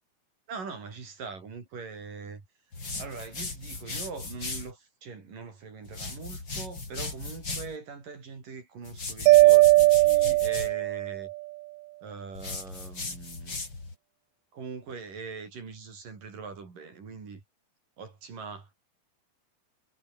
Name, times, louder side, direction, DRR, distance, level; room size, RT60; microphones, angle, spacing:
voice 1, 0.5-2.4 3.0-11.3 12.0-13.5 14.5-17.4 18.0-18.7, right 5 dB, 55° right, 6.5 m, -42 dB
sound 1, 2.7-4.7 5.8-7.8 8.8-10.7 12.3-13.9, left 3 dB, 25° left, 5.5 m, -37 dB
Mallet percussion, 9.3-11.3, right 21 dB, 80° right, 2.4 m, -19 dB
omnidirectional pair, 4.6 m